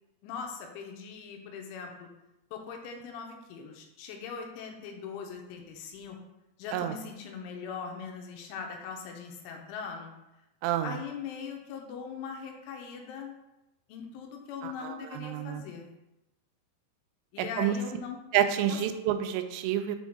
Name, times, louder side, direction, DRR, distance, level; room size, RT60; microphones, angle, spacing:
voice 1, 0.2-2.1 2.5-6.2 6.6-10.1 10.8-13.3 13.9-15.9 17.3-18.2 18.7-18.8, left 6 dB, 85° left, 2 dB, 3.1 m, -40 dB
voice 2, 10.6-10.9 14.6-15.6 17.4-17.8 18.3-20.0, right 10 dB, 85° right, 8 dB, 3.1 m, -29 dB
7.7 x 3.8 x 3.7 m, 0.94 s
omnidirectional pair, 5.6 m